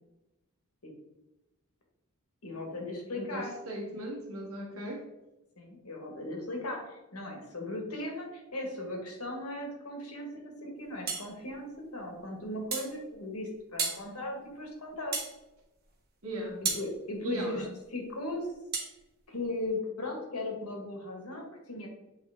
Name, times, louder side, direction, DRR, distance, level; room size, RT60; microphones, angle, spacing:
voice 1, 2.4-3.5 5.6-15.2 16.6-17.7 17.9-18.5 19.3-21.9, left 2 dB, 85° left, 1 dB, 1.8 m, -37 dB
voice 2, 3.2-5.1 16.2-16.6 17.2-17.7, right 1 dB, 70° right, -1 dB, 1.7 m, -37 dB
sound 1, 11.1-11.3 12.7-12.9 13.8-14.0 15.1-15.3 16.6-16.9 18.7-18.9, right 5 dB, 45° right, 1.4 m, -32 dB
8.1 x 3.6 x 3.6 m, 0.98 s
head